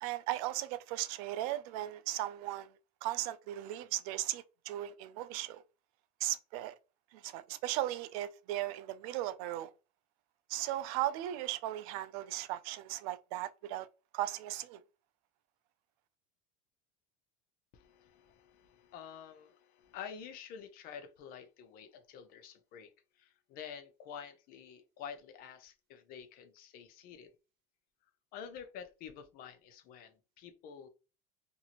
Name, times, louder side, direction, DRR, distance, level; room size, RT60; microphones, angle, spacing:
voice 1, 0.0-2.8 3.0-5.6 6.2-6.7 7.1-9.7 10.5-13.9 14.1-14.8, right 14 dB, 75° right, 0.4 m, -37 dB
voice 2, 17.7-22.9 23.2-27.3 28.3-30.9, left 7 dB, 50° left, 0.6 m, -49 dB
2.6 x 2.5 x 2.8 m
supercardioid pair, 130°, 19 cm